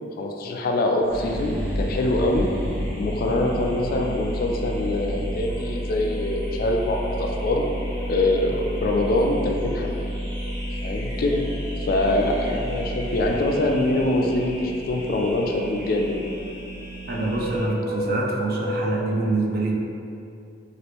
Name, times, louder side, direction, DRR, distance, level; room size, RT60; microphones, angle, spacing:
voice 1, 0.2-2.5 3.0-7.7 8.1-9.9 10.8-11.4 11.8-16.2, left 1 dB, 50° left, 1 dB, 0.3 m, -24 dB
Thunder, 1.1-18.5, equal, 25° right, 0.8 m, -40 dB
sound 1, 1.1-17.7, equal, 70° right, 1.2 m, -32 dB
sound 2, 2.1-19.0, equal, 5° left, 0.9 m, -38 dB
voice 2, 17.1-19.8, right 2 dB, 55° right, -2 dB, 0.4 m, -25 dB
2.9 x 2.4 x 3.3 m, 2.6 s
head